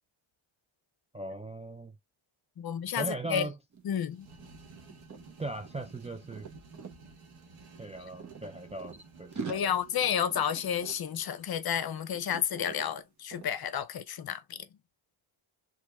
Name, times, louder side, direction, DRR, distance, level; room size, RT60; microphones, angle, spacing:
voice 1, 1.1-2.0 3.0-3.6 5.4-6.5 7.8-10.1, right 2 dB, 15° right, 0.3 m, -39 dB
voice 2, 2.6-3.5 3.8-4.3 9.5-14.7, left 8 dB, 50° left, 0.5 m, -31 dB
sound 1, 3.7-3.9 4.2-7.0 7.8-9.0 9.3-11.9 12.1-12.9 13.3-13.5, right 5 dB, 35° right, 1.0 m, -45 dB
sound 2, 4.1-11.5, right 4 dB, 85° right, 1.4 m, -54 dB
3.2 x 3.1 x 2.2 m
cardioid pair, 100°, 50 cm